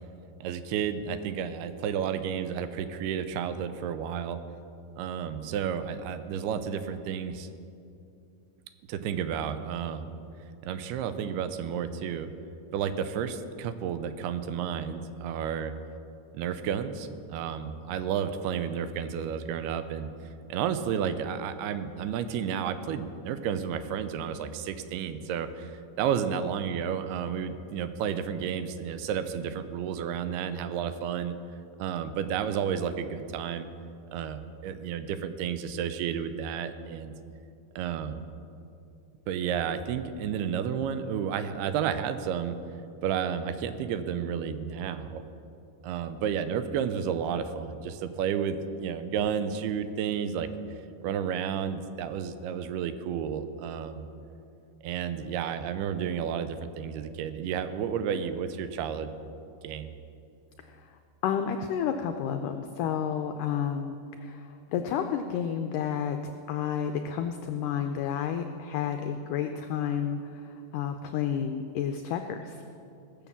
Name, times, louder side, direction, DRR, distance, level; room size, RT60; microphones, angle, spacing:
voice 1, 0.4-4.4 5.0-7.5 8.9-10.1 10.6-12.3 12.7-15.7 16.3-20.1 20.5-31.4 31.8-33.7 34.1-37.1 37.8-38.2 39.3-42.6 43.0-45.2 45.8-50.5 51.0-54.1 54.8-59.1 59.6-59.9, right 8 dB, 85° right, 11 dB, 2.7 m, -31 dB
voice 2, 61.2-72.6, left 8 dB, 90° left, 6 dB, 1.8 m, -31 dB
18.0 x 7.2 x 7.2 m, 2.6 s
omnidirectional pair, 4.5 m